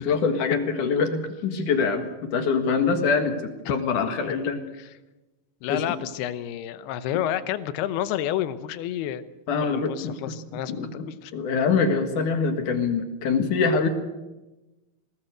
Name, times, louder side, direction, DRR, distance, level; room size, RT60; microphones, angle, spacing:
voice 1, 0.0-4.6 5.7-5.8 9.5-10.3 10.7-11.1 11.3-13.9, left 5 dB, 55° left, 7 dB, 3.0 m, -24 dB
voice 2, 5.6-9.2 9.6-11.3, left 11 dB, 80° left, 13 dB, 2.9 m, -30 dB
20.5 x 18.5 x 8.0 m, 1.1 s
omnidirectional pair, 4.6 m